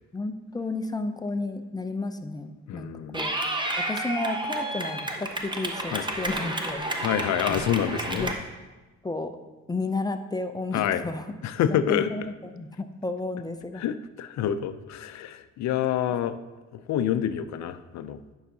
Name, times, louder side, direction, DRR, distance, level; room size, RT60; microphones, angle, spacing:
voice 1, 0.1-3.4 3.8-6.9 7.5-7.6 8.1-8.4 9.0-9.4 9.7-11.3 11.7-12.2 12.5-13.8, left 2 dB, 15° left, 8 dB, 0.4 m, -32 dB
voice 2, 2.7-3.2 5.9-6.0 7.0-8.3 10.7-11.0 11.4-12.1 13.7-16.4 16.7-18.2, left 10 dB, 65° left, 11 dB, 0.5 m, -27 dB
Clapping / Cheering, 3.1-8.3, right 1 dB, 15° right, 0.8 m, -31 dB
10.0 x 5.6 x 2.7 m, 1.2 s
cardioid pair, 90°, 30 cm